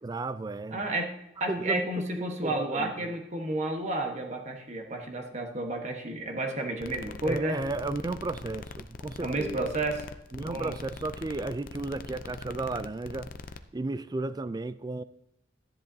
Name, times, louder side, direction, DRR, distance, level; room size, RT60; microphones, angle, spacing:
voice 1, 0.0-0.8 1.5-3.1 7.2-9.6 10.3-13.3 13.7-15.0, right 2 dB, 20° right, 0.3 m, -34 dB
voice 2, 0.7-1.1 1.4-7.6 9.2-10.0 10.4-10.7, right 2 dB, 40° right, 1.3 m, -31 dB
sound 1, 6.8-13.6, left 4 dB, 50° left, 0.5 m, -43 dB
13.0 x 10.5 x 2.8 m
head